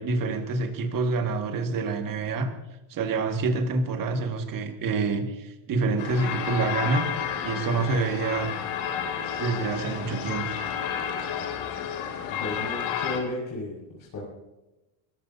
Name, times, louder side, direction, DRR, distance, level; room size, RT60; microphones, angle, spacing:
voice 1, 0.0-2.5 2.9-7.1 7.4-8.5 9.4-10.5, right 3 dB, 40° right, 5 dB, 2.0 m, -27 dB
sound 1, 6.0-13.2, left 8 dB, 70° left, 2.6 m, -31 dB
voice 2, 12.4-14.2, left 2 dB, 40° left, -6 dB, 5.9 m, -33 dB
23.5 x 15.0 x 2.8 m, 1.0 s
cardioid pair, 140°, 49 cm